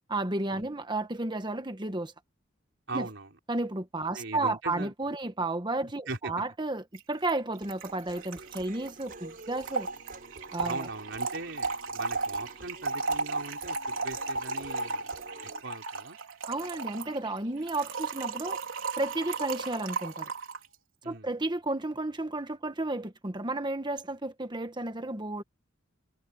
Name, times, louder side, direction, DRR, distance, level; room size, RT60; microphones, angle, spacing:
voice 1, 0.1-2.1 2.9-3.1 3.5-9.9 10.5-10.9 16.5-18.6 19.0-20.3 21.0-25.4, right 2 dB, 20° right, 1.2 m, -32 dB
voice 2, 2.9-3.3 4.1-4.9 6.1-6.3 10.6-15.1 15.6-16.2 21.0-21.3, right 3 dB, 65° right, 4.5 m, -39 dB
Trickle dribble / Fill (with liquid), 6.9-7.0 7.3-7.4 7.6-20.7, right 3 dB, 80° right, 3.6 m, -35 dB
Human voice, 7.6-15.6, right 2 dB, 45° right, 6.1 m, -50 dB
head